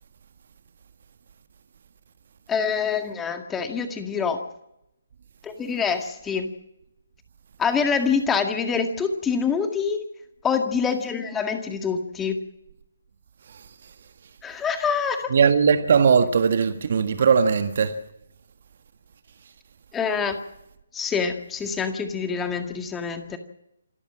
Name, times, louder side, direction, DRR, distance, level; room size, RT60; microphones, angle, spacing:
voice 1, 2.5-4.4 5.4-6.5 7.6-10.0 10.4-12.4 14.4-15.3 19.9-20.4 20.9-23.4, left 6 dB, 10° left, 1.9 m, -25 dB
voice 2, 15.3-18.0, right 6 dB, 50° right, 1.6 m, -19 dB
27.0 x 13.5 x 7.4 m
figure-of-eight pair, 140°, 0 cm